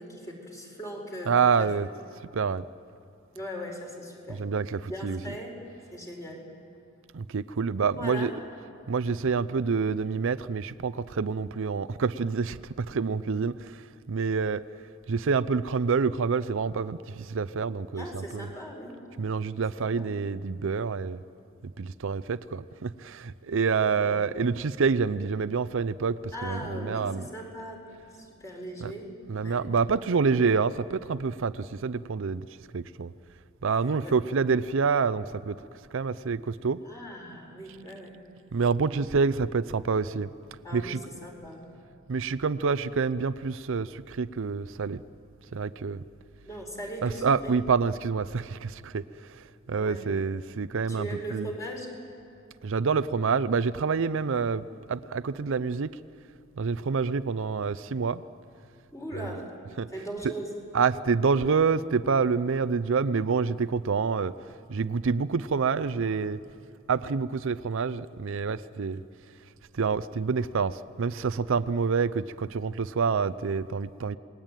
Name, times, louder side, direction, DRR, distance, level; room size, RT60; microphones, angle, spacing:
voice 1, 0.0-1.7 3.3-4.5 4.9-5.6 5.9-6.5 8.0-8.4 17.9-19.0 19.8-20.2 23.9-24.2 26.3-29.6 34.0-34.2 36.9-38.2 40.6-41.7 46.4-47.5 49.7-50.0 50.9-51.9 58.9-59.5 59.9-60.5, equal, 15° left, 0 dB, 4.5 m, -39 dB
voice 2, 1.3-1.9 2.3-2.6 4.4-5.2 7.1-8.3 8.9-14.6 15.1-18.5 19.2-21.2 21.8-27.2 28.8-28.9 29.3-32.5 32.7-33.1 33.6-35.6 35.9-36.8 38.5-40.3 40.7-41.0 42.1-45.0 45.5-46.0 47.0-51.5 52.6-55.9 56.6-58.2 59.2-59.3 59.8-59.9 60.7-64.3 64.7-66.4 66.9-69.0 69.7-74.2, right 5 dB, 65° right, 14 dB, 0.5 m, -27 dB
28.0 x 20.5 x 9.0 m, 2.5 s
head